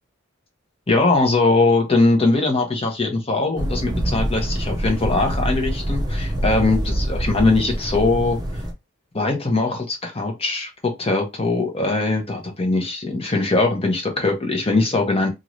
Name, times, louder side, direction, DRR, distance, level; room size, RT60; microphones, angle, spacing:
voice 1, 0.9-8.4 9.1-15.3, left 3 dB, 30° left, 0.9 m, -21 dB
sound 1, 3.6-8.7, right 1 dB, 20° right, 0.6 m, -25 dB
2.7 x 2.5 x 3.1 m
head